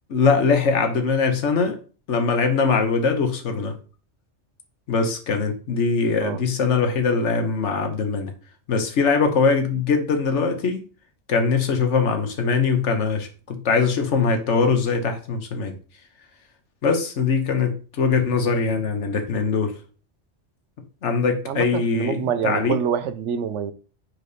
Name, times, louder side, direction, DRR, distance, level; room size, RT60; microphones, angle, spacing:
voice 1, 0.1-1.8 2.1-3.7 4.9-8.3 8.7-10.8 11.3-15.7 16.8-19.7 21.0-22.8, left 5 dB, 85° left, 1.4 m, -22 dB
voice 2, 21.5-23.7, right 8 dB, 85° right, 1.0 m, -26 dB
5.0 x 4.8 x 4.0 m
omnidirectional pair, 1.2 m